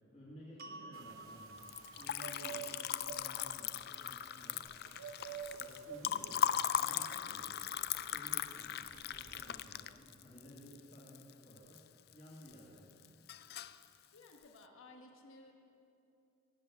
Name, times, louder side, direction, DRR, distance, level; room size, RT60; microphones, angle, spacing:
voice 1, 0.1-1.6 2.0-4.6 5.2-7.6 8.1-11.8 12.1-12.9, equal, 30° left, -7 dB, 2.4 m, -55 dB
sound 1, 0.6-6.8, right 2 dB, 45° right, 0.8 m, -56 dB
sound 2, 0.9-9.5, right 7 dB, 75° right, 0.8 m, -51 dB
Liquid, 1.6-11.8 12.1-12.8 13.0-13.8, left 10 dB, 45° left, 0.3 m, -38 dB
voice 2, 14.1-15.5, left 2 dB, 65° left, 2 dB, 1.3 m, -57 dB
17.0 x 8.0 x 8.3 m, 2.8 s
head